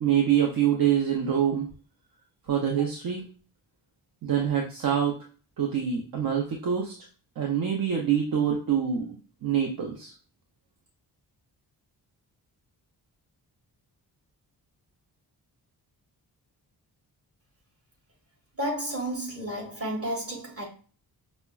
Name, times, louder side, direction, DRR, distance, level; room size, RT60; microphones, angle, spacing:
voice 1, 0.0-1.7 2.5-3.2 4.2-5.2 5.6-6.9 7.4-10.1, right 9 dB, 60° right, 0.7 m, -25 dB
voice 2, 18.6-20.7, right 1 dB, 35° right, 1.6 m, -31 dB
5.6 x 2.1 x 2.3 m
wide cardioid pair, 95°, 40 cm